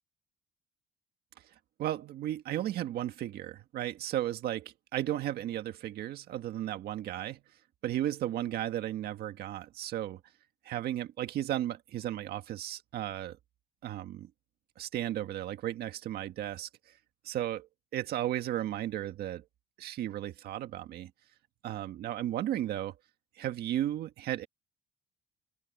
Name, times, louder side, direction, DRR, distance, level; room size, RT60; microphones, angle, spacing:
voice 1, 1.8-7.4 7.8-10.2 10.6-13.4 13.8-14.3 14.8-16.7 17.2-19.4 19.8-21.1 21.6-22.9 23.4-24.5, right 12 dB, 70° right, 1.7 m, -34 dB
open air
cardioid pair, 110°, 17 cm